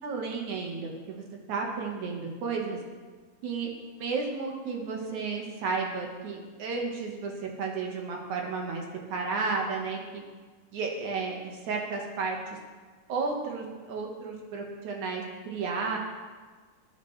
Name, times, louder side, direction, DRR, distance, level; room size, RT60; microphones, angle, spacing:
voice 1, 0.0-2.8 3.4-3.7 4.0-8.8 9.1-10.2 10.7-11.3 11.6-12.4 13.1-16.0, right 4 dB, 70° right, 0 dB, 2.8 m, -32 dB
18.5 x 9.0 x 3.3 m, 1.4 s
omnidirectional pair, 3.7 m